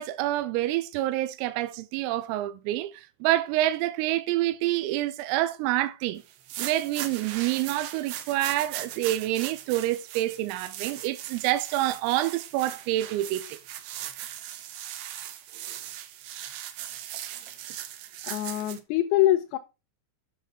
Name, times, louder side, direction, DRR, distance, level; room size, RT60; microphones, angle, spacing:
voice 1, 0.0-6.2 6.6-13.6, right 15 dB, 90° right, 3.4 m, -27 dB
sound 1, 6.3-18.8, right 11 dB, 75° right, 2.6 m, -39 dB
voice 2, 18.2-19.6, left 14 dB, 90° left, 3.6 m, -24 dB
9.9 x 6.8 x 4.7 m
omnidirectional pair, 6.0 m